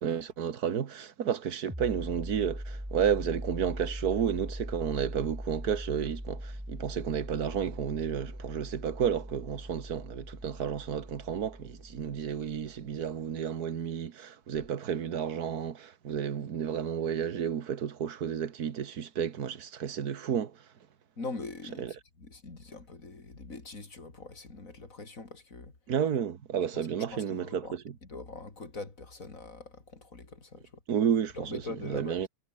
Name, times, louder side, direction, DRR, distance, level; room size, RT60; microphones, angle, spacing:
voice 1, 0.0-20.5 21.8-21.9 25.9-27.8 30.9-32.3, right 8 dB, 80° right, 1.9 m, -31 dB
sound 1, 1.7-13.0, equal, 5° right, 7.4 m, -41 dB
voice 2, 21.2-25.8 26.7-30.8 31.3-32.2, left 3 dB, 60° left, 4.1 m, -43 dB
omnidirectional pair, 1.6 m